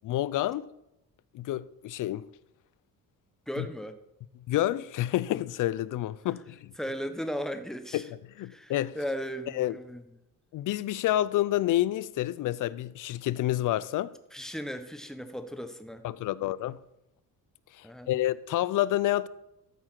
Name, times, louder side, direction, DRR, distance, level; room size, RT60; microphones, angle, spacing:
voice 1, 0.0-0.6 1.3-2.3 3.6-3.7 4.5-6.7 7.9-8.0 8.4-9.0 9.6-9.8 10.5-14.1 16.0-16.8 17.8-19.3, left 14 dB, 60° left, 0.5 m, -29 dB
voice 2, 3.5-4.0 6.8-8.1 8.5-10.0 14.3-16.0 17.8-18.1, equal, ahead, 0.8 m, -36 dB
13.0 x 4.8 x 6.0 m
cardioid pair, 125°, 36 cm